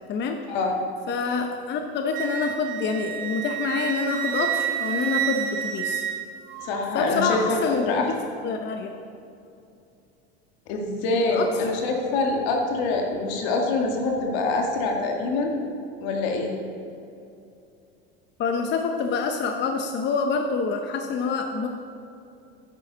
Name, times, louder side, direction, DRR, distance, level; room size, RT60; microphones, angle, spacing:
voice 1, 1.1-6.0 6.9-8.1 8.4-8.9 11.1-11.5 18.4-21.7, left 4 dB, 35° left, 4 dB, 0.8 m, -26 dB
Wind instrument woodwind instrument, 2.1-6.7, right 10 dB, 75° right, 0.7 m, -29 dB
voice 2, 6.6-8.1 10.7-15.5 16.0-16.5, left 3 dB, 70° left, 1 dB, 2.0 m, -25 dB
10.5 x 9.5 x 4.0 m, 2.6 s
supercardioid pair, 115°, 31 cm